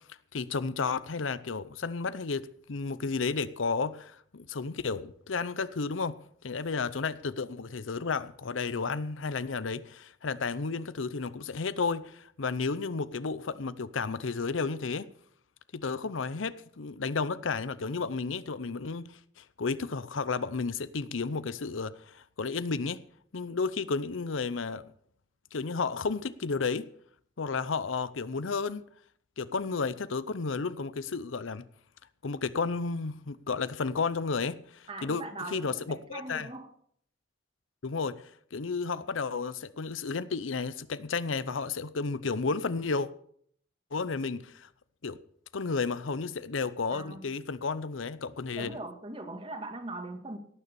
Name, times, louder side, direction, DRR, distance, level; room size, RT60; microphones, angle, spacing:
voice 1, 0.3-6.2 6.4-15.1 15.7-23.0 23.3-24.8 25.5-26.9 27.4-28.9 29.4-31.6 32.2-35.2 35.5-36.5 37.8-43.1 43.9-44.7 45.0-45.2 45.5-48.8, left 4 dB, 85° left, 0.7 m, -32 dB
voice 2, 34.9-36.7 46.9-47.3 48.6-50.4, right 2 dB, 30° right, 1.9 m, -40 dB
17.5 x 6.8 x 6.9 m
head